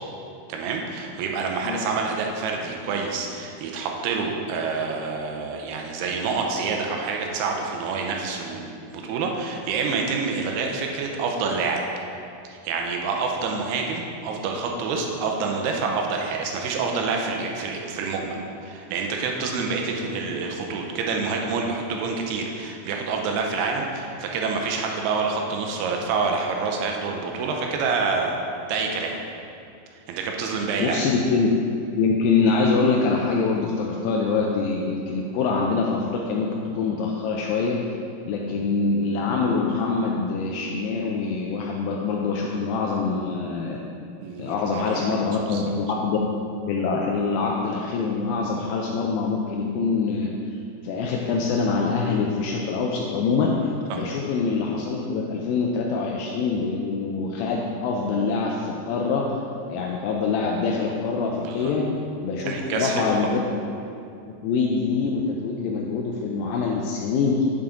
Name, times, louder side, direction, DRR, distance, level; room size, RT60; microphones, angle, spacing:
voice 1, 0.5-11.8 12.5-28.4 28.7-29.1 30.1-31.1 44.2-45.7 53.9-54.0 61.4-61.7 62.4-63.3, right 4 dB, 80° right, 1 dB, 2.7 m, -27 dB
voice 2, 30.8-31.5 32.0-36.5 36.7-37.8 38.3-43.8 44.4-46.2 46.7-50.3 50.8-59.3 59.7-61.9 62.2-63.4 64.4-67.5, left 4 dB, 85° left, -1 dB, 2.0 m, -24 dB
8.8 x 5.8 x 3.7 m, 2.6 s
omnidirectional pair, 4.6 m